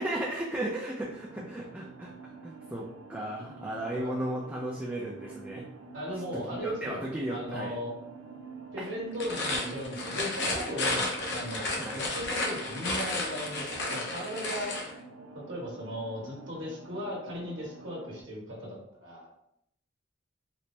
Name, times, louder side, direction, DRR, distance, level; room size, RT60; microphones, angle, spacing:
voice 1, 0.0-5.7 6.5-7.7 8.8-8.9 11.8-12.0, right 1 dB, 10° right, -4 dB, 0.3 m, -35 dB
sound 1, 1.0-18.2, right 3 dB, 85° right, 0.5 m, -48 dB
voice 2, 5.9-7.0 7.3-8.0 8.7-14.7 15.5-19.3, equal, 65° right, -5 dB, 1.5 m, -37 dB
sound 2, 9.1-14.9, left 2 dB, 60° left, 0.8 m, -32 dB
4.3 x 2.0 x 3.1 m, 0.77 s
head